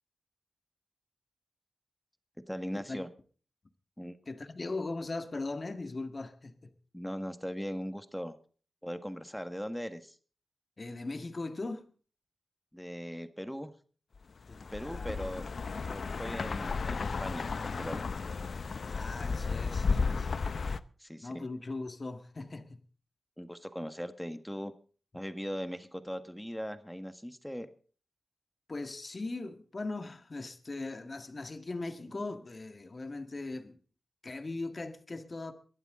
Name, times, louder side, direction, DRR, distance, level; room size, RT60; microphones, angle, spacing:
voice 1, 2.5-3.1 4.0-4.2 6.9-8.3 8.8-10.1 12.7-13.7 14.7-15.5 15.9-18.1 21.0-21.5 23.4-24.7 25.1-27.7, equal, 5° left, 1.6 m, -39 dB
voice 2, 4.3-6.7 10.8-11.9 14.5-15.2 18.9-20.4 21.2-22.8 28.7-33.8 34.2-35.5, left 3 dB, 45° left, 1.8 m, -39 dB
sound 1, 14.5-20.8, left 4 dB, 65° left, 0.7 m, -33 dB
22.0 x 12.0 x 3.8 m
cardioid pair, 55°, 0 cm